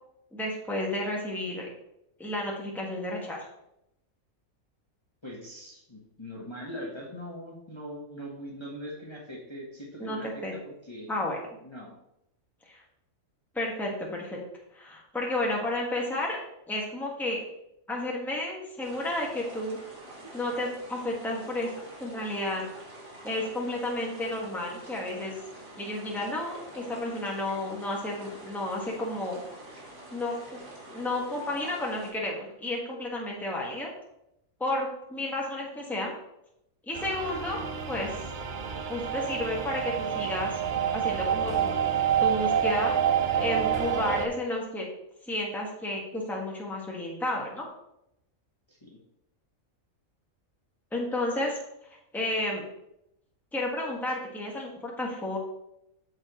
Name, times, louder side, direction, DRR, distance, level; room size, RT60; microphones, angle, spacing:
voice 1, 0.3-1.7 2.2-3.5 10.0-10.5 11.1-11.4 12.7-12.8 13.5-14.4 14.7-16.4 16.7-17.4 17.9-19.8 20.3-21.7 22.0-22.7 23.2-25.3 25.8-29.4 30.1-30.6 30.9-33.9 34.6-36.1 36.9-38.2 38.9-40.6 40.9-41.8 42.2-42.9 43.4-44.9 45.3-47.7 50.9-51.6 52.1-52.6 53.5-55.4, left 1 dB, ahead, -2 dB, 1.4 m, -32 dB
voice 2, 5.2-11.1 11.6-11.9 48.7-49.0, equal, 20° left, -3 dB, 1.3 m, -41 dB
sound 1, 18.8-32.1, right 1 dB, 75° right, 2.7 m, -46 dB
sound 2, 36.9-44.3, right 8 dB, 50° right, 0.6 m, -28 dB
sound 3, 41.5-42.2 43.7-44.2, equal, 50° left, 1.9 m, -45 dB
13.0 x 4.7 x 3.0 m, 0.82 s
omnidirectional pair, 1.4 m